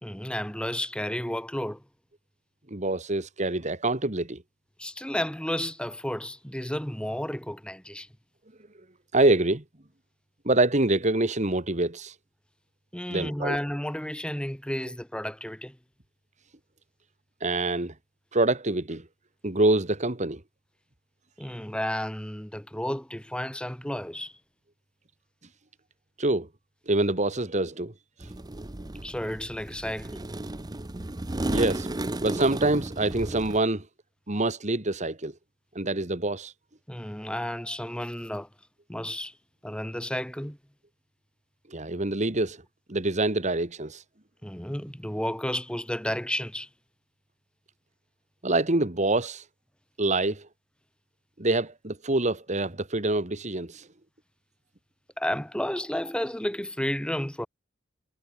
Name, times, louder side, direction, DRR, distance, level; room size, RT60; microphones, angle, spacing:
voice 1, 0.0-1.8 4.8-8.1 12.9-15.8 21.4-24.3 29.0-30.2 36.9-38.5 38.9-39.3 39.6-40.6 44.4-46.7 55.2-57.5, left 1 dB, 5° left, 1.9 m, -32 dB
voice 2, 2.7-4.4 9.1-9.6 10.4-12.1 13.1-13.6 17.4-17.9 18.3-19.1 19.4-20.4 26.2-26.5 26.9-27.9 31.5-31.9 32.2-33.9 34.3-35.3 35.8-36.5 41.7-42.6 42.9-44.0 48.4-49.4 50.0-50.5 51.4-53.9, right 2 dB, 35° right, 2.0 m, -25 dB
sound 1, 28.2-33.6, right 1 dB, 20° right, 0.8 m, -33 dB
head